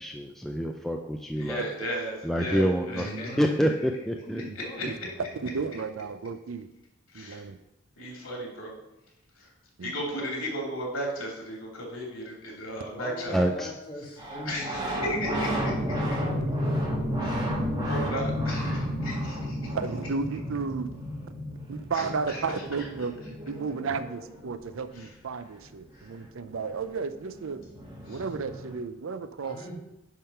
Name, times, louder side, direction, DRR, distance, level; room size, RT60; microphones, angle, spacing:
voice 1, 0.0-1.7 2.2-3.1 3.4-4.4 13.3-13.7, equal, ahead, 2 dB, 0.3 m, -27 dB
voice 2, 1.4-3.4 4.7-4.8 7.1-7.4 8.0-8.7 9.8-13.4 14.5-15.7 17.2-17.5 17.8-19.6 21.9-22.4 25.0-25.1 26.5-26.6 28.1-28.2, equal, 70° left, -2 dB, 2.8 m, -35 dB
voice 3, 2.9-3.8 4.1-5.3 12.9-15.6 29.4-29.8, equal, 25° left, -2 dB, 1.7 m, -40 dB
voice 4, 4.8-6.7 7.1-7.6 9.8-10.0 19.7-20.9 21.7-27.6 28.1-29.6, right 5 dB, 65° right, 11 dB, 0.5 m, -33 dB
sound 1, 14.2-24.6 26.7-26.8 26.9-28.7, equal, 20° right, 1.5 m, -32 dB
10.0 x 3.7 x 5.5 m, 0.91 s
head